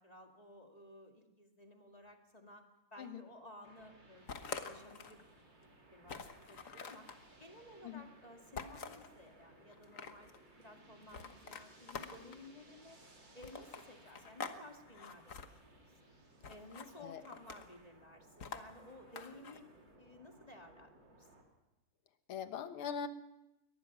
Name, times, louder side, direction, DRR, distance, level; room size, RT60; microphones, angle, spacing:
voice 1, 0.0-2.7 2.9-4.3 4.5-5.2 5.9-7.1 7.4-10.3 10.6-13.0 13.3-16.2 16.5-19.7 20.0-21.3, left 1 dB, 20° left, 3 dB, 2.0 m, -55 dB
sound 1, 3.6-21.4, right 2 dB, 55° right, 4.1 m, -62 dB
sound 2, 4.3-5.2 5.6-5.7 6.1-7.2 8.5-9.1 9.7-10.4 11.1-12.5 13.4-14.6 14.9-15.5 16.4-16.9 17.2-17.8 18.4-19.6, left 5 dB, 45° left, 1.4 m, -46 dB
voice 2, 22.3-23.1, left 7 dB, 80° left, 10 dB, 2.0 m, -41 dB
22.5 x 19.5 x 6.0 m, 0.93 s
omnidirectional pair, 2.4 m